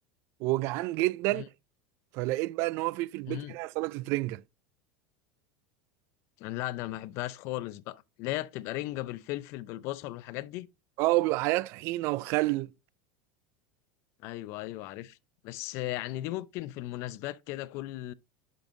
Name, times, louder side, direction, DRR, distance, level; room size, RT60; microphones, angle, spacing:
voice 1, 0.4-1.4 2.1-4.4 11.0-12.7, right 20 dB, 55° right, 0.3 m, -29 dB
voice 2, 6.4-10.7 14.2-15.2 15.4-18.1, left 16 dB, 55° left, 0.5 m, -36 dB
11.0 x 5.2 x 2.6 m
supercardioid pair, 135°, 6 cm